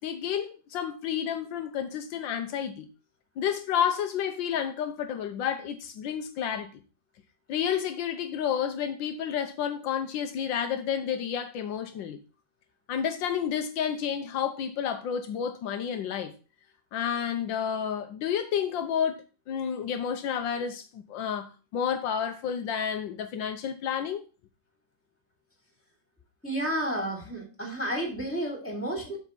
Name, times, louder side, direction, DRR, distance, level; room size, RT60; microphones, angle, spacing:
voice 1, 0.0-2.9 3.4-6.8 7.5-12.2 12.9-16.3 16.9-24.2, left 8 dB, 80° left, 1.5 m, -30 dB
voice 2, 26.4-29.2, right 1 dB, 5° left, 2.7 m, -31 dB
7.5 x 6.5 x 3.9 m
omnidirectional pair, 2.0 m